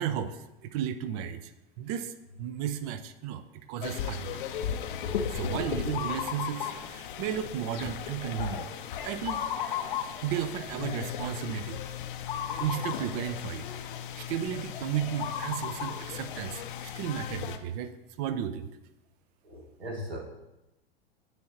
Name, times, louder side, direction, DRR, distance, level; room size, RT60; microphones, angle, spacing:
voice 1, 0.0-1.5 1.8-3.4 3.7-4.4 5.3-8.7 9.0-9.5 10.2-11.8 12.6-13.6 14.2-17.9 18.2-18.7, right 9 dB, 40° right, 11 dB, 0.5 m, -34 dB
sound 1, 3.8-17.6, left 8 dB, 55° left, 0.6 m, -35 dB
voice 2, 19.4-20.2, equal, 80° right, 0 dB, 1.4 m, -38 dB
9.3 x 4.6 x 2.8 m, 0.96 s
figure-of-eight pair, 90°, 30 cm